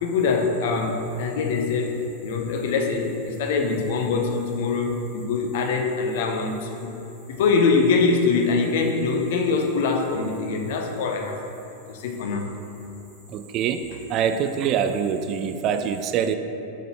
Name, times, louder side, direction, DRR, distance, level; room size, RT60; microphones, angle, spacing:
voice 1, 0.0-1.9 2.2-6.9 7.3-11.4 11.9-12.5, left 4 dB, 55° left, 4 dB, 0.6 m, -23 dB
voice 2, 13.3-16.4, right 7 dB, 35° right, 8 dB, 0.3 m, -25 dB
7.3 x 5.4 x 2.9 m, 2.9 s
figure-of-eight pair, 90°, 0 cm